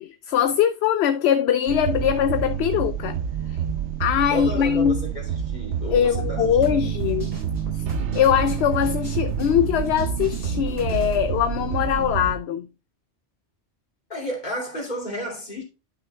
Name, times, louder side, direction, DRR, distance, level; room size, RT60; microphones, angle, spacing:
voice 1, 0.0-3.2 3.5-3.6 4.0-5.0 5.9-7.3 7.7-12.7, left 9 dB, 75° left, 0.8 m, -22 dB
sound 1, 1.7-12.4, right 8 dB, 90° right, 1.0 m, -28 dB
voice 2, 4.3-6.9 14.1-15.6, equal, 40° left, 3.0 m, -32 dB
sound 2, 6.4-11.3, right 1 dB, 55° right, 4.3 m, -35 dB
11.5 x 5.7 x 2.3 m
omnidirectional pair, 1.1 m